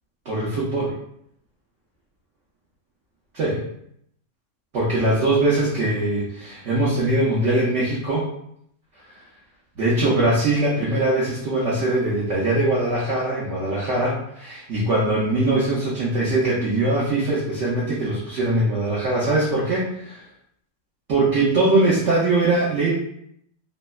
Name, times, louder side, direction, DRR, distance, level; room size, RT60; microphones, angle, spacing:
voice 1, 0.3-0.9 3.3-3.6 4.7-8.2 9.8-20.2 21.1-22.9, right 2 dB, 80° right, -6 dB, 0.6 m, -21 dB
3.2 x 2.0 x 2.2 m, 0.72 s
omnidirectional pair, 2.0 m